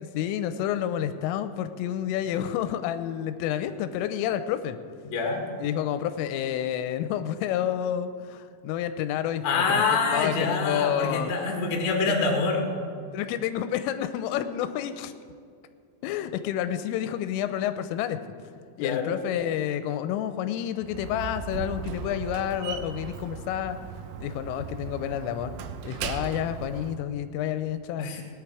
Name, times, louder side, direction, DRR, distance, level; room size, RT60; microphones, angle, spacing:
voice 1, 0.1-4.8 5.6-11.3 13.1-15.1 16.0-18.2 18.8-23.8 24.2-25.5 25.8-28.2, left 10 dB, 85° left, 10 dB, 3.2 m, -29 dB
voice 2, 5.0-5.4 9.4-12.7 18.8-19.1 28.0-28.2, left 4 dB, 50° left, 1 dB, 2.3 m, -25 dB
Slam, 20.8-27.0, right 7 dB, 90° right, 3.5 m, -37 dB
19.5 x 10.5 x 4.8 m, 2.3 s
omnidirectional pair, 5.7 m